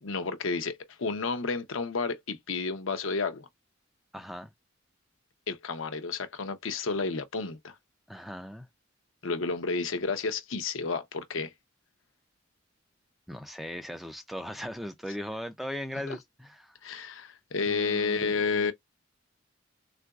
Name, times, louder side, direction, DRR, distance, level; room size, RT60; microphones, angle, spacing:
voice 1, 0.0-3.5 5.5-7.8 9.2-11.5 16.1-16.2 16.8-18.7, left 4 dB, 70° left, 0.7 m, -31 dB
voice 2, 4.1-4.5 8.1-8.7 13.3-16.8 17.6-18.7, equal, ahead, 0.4 m, -38 dB
3.7 x 2.4 x 2.3 m
head